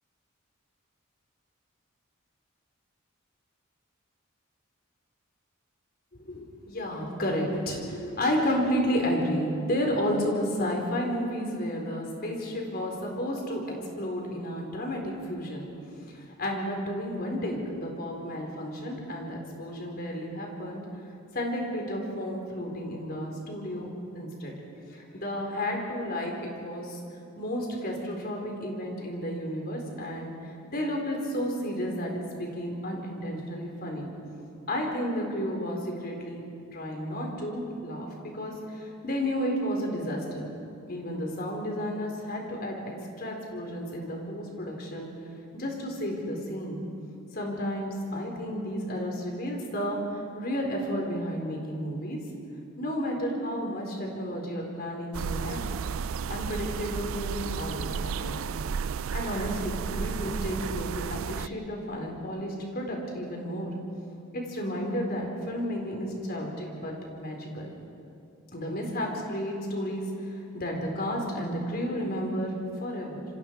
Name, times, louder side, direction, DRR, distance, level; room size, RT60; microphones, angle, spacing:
voice 1, 6.1-15.7 16.1-20.8 21.3-24.5 24.9-27.0 27.4-34.1 34.7-36.4 36.7-38.1 38.3-40.5 40.9-42.8 43.2-45.1 45.5-46.8 47.3-52.2 52.8-55.6 56.3-58.4 59.1-63.7 64.3-67.7 68.5-73.2, equal, 50° left, 0 dB, 4.3 m, -32 dB
sound 1, 55.1-61.5, right 6 dB, 75° right, 0.4 m, -33 dB
27.5 x 25.5 x 4.7 m, 2.6 s
head